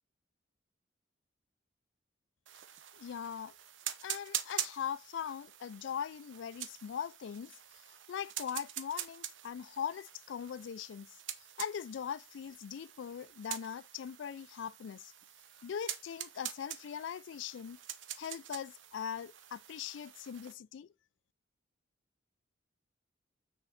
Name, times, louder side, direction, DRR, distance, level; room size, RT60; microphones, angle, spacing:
sound 1, 2.5-20.5, right 11 dB, 85° right, 0.9 m, -45 dB
voice 1, 2.9-3.5 4.0-7.5 8.1-11.1 11.6-15.1 15.6-17.8 18.2-20.9, left 8 dB, 75° left, 0.3 m, -40 dB
6.2 x 4.3 x 5.7 m
head